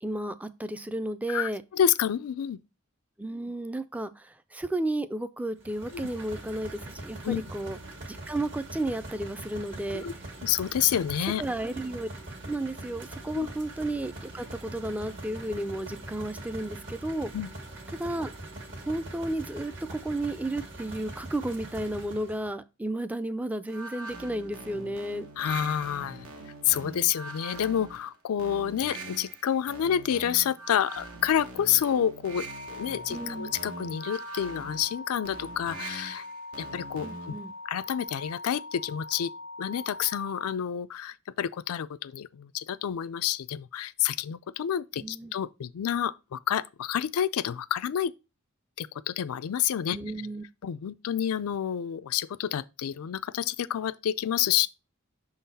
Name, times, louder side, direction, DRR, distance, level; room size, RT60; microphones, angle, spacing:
voice 1, 0.0-1.6 3.2-7.8 8.1-10.0 11.4-12.1 12.4-17.3 18.0-18.3 18.8-25.3 33.1-33.5 37.0-37.5 45.0-45.3 49.9-50.4, right 1 dB, 5° right, 0.3 m, -33 dB
voice 2, 1.3-2.6 5.9-6.1 7.2-7.4 9.9-10.1 10.4-11.4 13.3-13.5 17.3-17.5 25.4-26.3 26.7-36.2 36.6-37.3 37.7-39.3 39.6-48.1 48.8-50.0 50.6-54.7, left 9 dB, 90° left, 0.4 m, -29 dB
sound 1, 5.6-22.5, right 2 dB, 60° right, 1.6 m, -42 dB
sound 2, 23.7-37.5, right 2 dB, 80° right, 1.1 m, -43 dB
sound 3, 32.5-40.6, left 2 dB, 30° right, 0.8 m, -42 dB
6.0 x 3.9 x 4.0 m
head